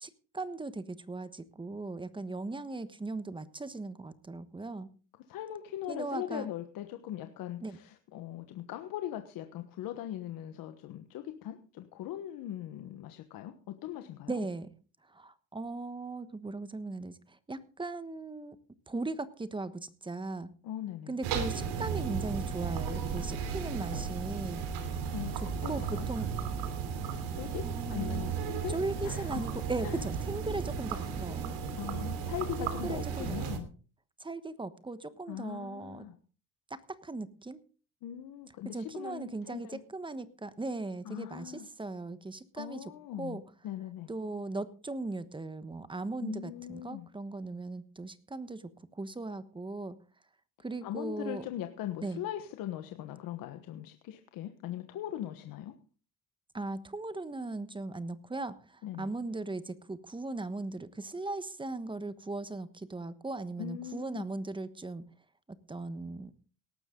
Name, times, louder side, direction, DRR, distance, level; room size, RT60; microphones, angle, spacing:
voice 1, 0.0-4.9 5.9-6.5 7.6-7.8 14.3-14.7 15.1-18.6 18.9-20.5 21.1-24.6 25.7-26.3 27.6-28.3 28.7-31.6 32.6-33.4 34.2-36.0 36.7-37.6 38.7-42.8 43.2-43.4 44.1-50.0 50.6-51.5 52.0-52.2 56.5-65.0 65.7-66.3, right 2 dB, 15° right, 13 dB, 1.2 m, -38 dB
voice 2, 5.3-14.4 20.6-21.2 25.1-25.3 25.6-26.1 27.4-28.8 29.0-29.4 29.8-30.0 31.7-33.7 35.3-36.1 38.0-39.8 41.0-41.7 42.6-44.1 46.2-47.1 50.8-55.7 58.8-59.1 63.6-64.2, left 12 dB, 75° left, 8 dB, 1.3 m, -40 dB
sound 1, 21.2-33.6, right 6 dB, 90° right, 3.1 m, -35 dB
18.0 x 12.5 x 3.8 m, 0.38 s
cardioid pair, 105°, 34 cm